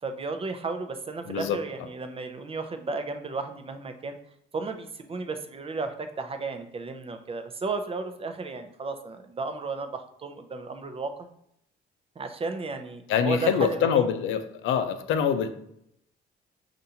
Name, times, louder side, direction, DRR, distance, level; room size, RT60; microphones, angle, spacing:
voice 1, 0.0-4.2 4.5-11.3 12.2-14.0, right 4 dB, 30° right, 7 dB, 0.5 m, -34 dB
voice 2, 1.3-1.6 13.1-15.5, left 8 dB, 80° left, 9 dB, 0.5 m, -25 dB
5.4 x 2.5 x 2.7 m, 0.75 s
cardioid pair, 90°, 20 cm